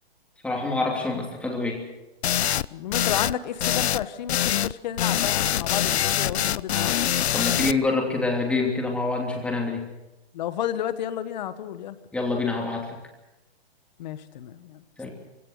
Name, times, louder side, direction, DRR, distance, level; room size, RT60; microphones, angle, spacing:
voice 1, 0.4-1.8 7.3-9.8 12.1-13.0 15.0-15.1, left 3 dB, 5° left, 0 dB, 2.9 m, -26 dB
sound 1, 2.2-2.7 2.9-3.3 3.6-4.0 4.3-4.7 5.0-7.7, left 10 dB, 85° left, 0.6 m, -24 dB
voice 2, 2.7-7.0 10.3-12.0 14.0-14.8, left 10 dB, 45° left, 13 dB, 1.4 m, -31 dB
22.5 x 17.0 x 6.7 m, 0.97 s
hypercardioid pair, 155°, 32 cm